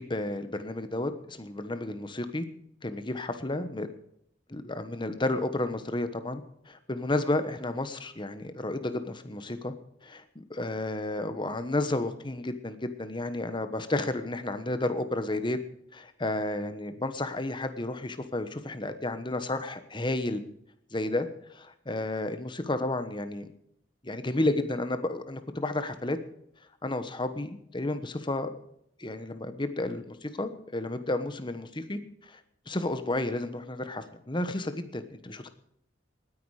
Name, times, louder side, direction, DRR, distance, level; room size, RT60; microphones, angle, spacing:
voice 1, 0.0-2.4 2.8-3.9 4.5-9.7 10.0-15.6 15.9-20.4 20.9-21.3 21.5-23.5 24.0-26.2 26.8-28.5 29.0-32.0 32.3-32.4 32.7-35.5, left 2 dB, 25° left, 10 dB, 1.2 m, -32 dB
19.0 x 9.8 x 4.9 m, 0.73 s
head